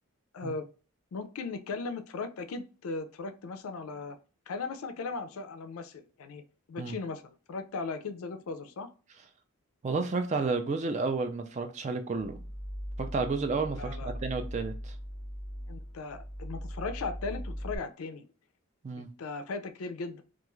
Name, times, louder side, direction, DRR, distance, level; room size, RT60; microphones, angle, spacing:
voice 1, 0.3-0.7 1.1-4.2 4.5-8.9 13.8-14.1 15.7-18.3 19.0-20.2, left 4 dB, 70° left, 0.4 m, -38 dB
voice 2, 9.8-12.4 13.0-15.0 18.8-19.1, right 4 dB, 30° right, 0.3 m, -31 dB
sound 1, 12.2-17.8, equal, 10° left, 0.8 m, -39 dB
2.4 x 2.3 x 3.0 m
head